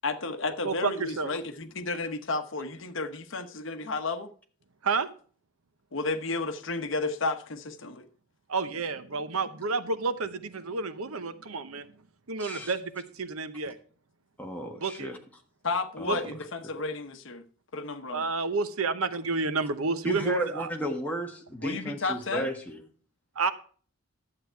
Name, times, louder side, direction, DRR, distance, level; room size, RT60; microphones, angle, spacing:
voice 1, 0.0-4.3 5.9-8.1 15.6-17.4 17.7-18.2 21.6-22.5, left 3 dB, 60° left, 1.0 m, -32 dB
voice 2, 0.6-1.3 4.8-5.1 8.5-11.9 12.3-13.8 14.8-15.1 16.1-16.2 18.1-20.7 23.4-23.5, right 4 dB, 75° right, 0.9 m, -30 dB
voice 3, 12.4-12.7 14.4-15.2 16.0-16.3 16.6-16.7 20.0-22.8, equal, 5° left, 1.4 m, -34 dB
11.5 x 7.8 x 4.5 m
head